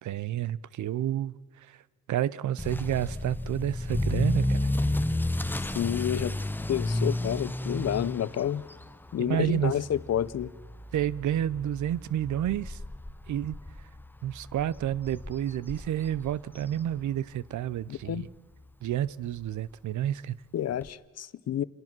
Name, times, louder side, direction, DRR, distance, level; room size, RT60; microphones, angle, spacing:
voice 1, 0.0-1.3 1.7-1.8 2.1-4.7 9.2-9.7 10.9-12.8 13.3-13.6 14.2-18.3 18.8-20.4, right 11 dB, 75° right, 0.7 m, -30 dB
Motor vehicle (road) / Accelerating revving vroom, 2.6-17.4 17.7-18.1 18.6-18.7 19.0-19.1 19.4-19.5 20.8-20.9, left 1 dB, 5° left, 0.7 m, -32 dB
voice 2, 5.7-6.3 6.7-8.6 9.1-10.5 17.9-18.3 20.5-21.6, left 10 dB, 60° left, 0.7 m, -29 dB
27.5 x 18.0 x 6.1 m
cardioid pair, 90°, 30 cm